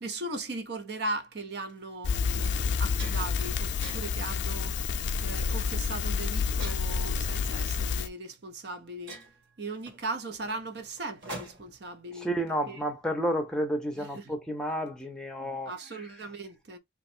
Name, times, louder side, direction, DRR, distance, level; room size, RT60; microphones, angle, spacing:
voice 1, 0.0-4.7 5.2-9.2 9.6-12.3 12.7-12.8 13.9-14.3 15.4-16.8, right 2 dB, 60° right, 0.7 m, -38 dB
sound 1, 1.5-1.7 2.3-2.4 2.7-3.4 3.8-4.3 4.9-5.2 6.6-7.1 8.2-8.3 8.7-8.8 9.1-11.8, right 2 dB, 80° right, 1.8 m, -45 dB
Crackle, 2.0-8.1, left 5 dB, 75° left, 0.4 m, -29 dB
voice 2, 12.1-16.0, equal, 5° left, 0.6 m, -31 dB
3.0 x 2.3 x 4.3 m
head